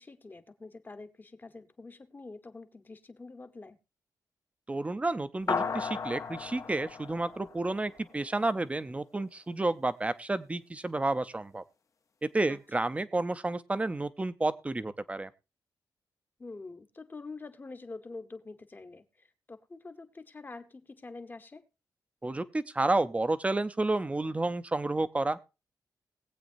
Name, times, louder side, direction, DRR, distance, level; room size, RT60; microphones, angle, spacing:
voice 1, 0.0-3.8 12.5-12.6 16.4-21.6, left 3 dB, 25° left, 10 dB, 1.0 m, -46 dB
voice 2, 4.7-11.6 12.3-15.3 22.2-25.4, right 2 dB, 15° right, 13 dB, 0.6 m, -30 dB
sound 1, 5.5-8.2, left 5 dB, 45° left, 0.7 m, -35 dB
20.0 x 8.3 x 2.6 m, 0.28 s
wide cardioid pair, 125°, 7 cm